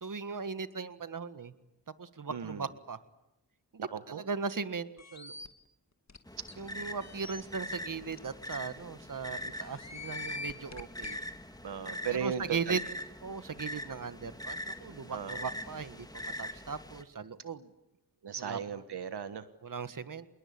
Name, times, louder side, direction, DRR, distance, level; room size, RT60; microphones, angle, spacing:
voice 1, 0.0-1.5 2.0-3.0 3.7-5.4 6.6-11.2 12.1-12.8 13.2-17.7 18.4-18.8 19.6-20.3, right 5 dB, 55° right, 12 dB, 1.6 m, -38 dB
voice 2, 2.3-2.7 3.8-4.2 6.4-6.5 11.6-12.8 15.1-15.4 18.2-19.4, right 7 dB, 90° right, 11 dB, 1.4 m, -36 dB
sound 1, 5.0-5.5 6.1-6.2 6.5-6.6 7.0-7.4 8.1-8.2 8.5-8.6 9.6-11.2, left 3 dB, 45° left, 2.4 m, -43 dB
sound 2, 6.3-17.0, left 1 dB, 10° left, 2.5 m, -43 dB
27.0 x 21.5 x 8.7 m, 0.87 s
cardioid pair, 60°, 39 cm